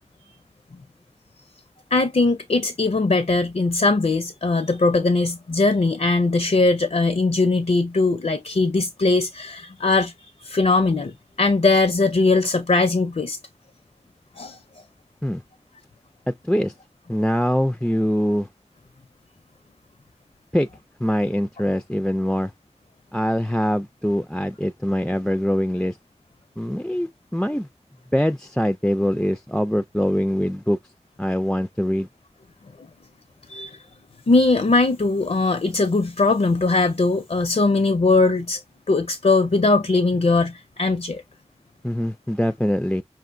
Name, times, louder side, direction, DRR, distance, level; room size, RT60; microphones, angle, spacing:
voice 1, 1.9-13.4 14.4-14.6 33.5-33.8 34.3-38.6 38.9-41.2, left 3 dB, 75° left, 0.5 m, -20 dB
voice 2, 16.3-16.7 17.1-18.5 20.5-20.7 21.0-22.5 23.1-26.0 26.6-27.7 28.1-30.8 31.2-32.1 41.8-43.0, equal, 5° left, 0.3 m, -23 dB
5.8 x 2.5 x 2.5 m
wide cardioid pair, 45°, 12 cm